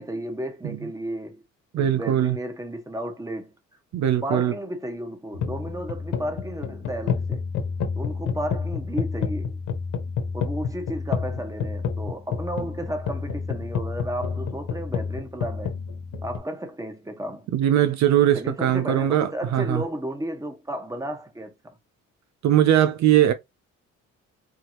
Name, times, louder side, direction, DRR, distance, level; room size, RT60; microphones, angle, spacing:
voice 1, 0.0-1.4 1.7-3.5 4.2-7.5 7.9-9.6 10.3-15.8 16.2-17.5 18.3-21.8, right 1 dB, 10° right, 1.3 m, -33 dB
voice 2, 1.7-2.4 3.9-4.5 17.5-19.8 22.4-23.3, right 11 dB, 65° right, 0.6 m, -20 dB
sound 1, 5.3-16.4, left 6 dB, 85° left, 1.2 m, -29 dB
4.7 x 3.0 x 3.0 m
cardioid pair, 90°, 30 cm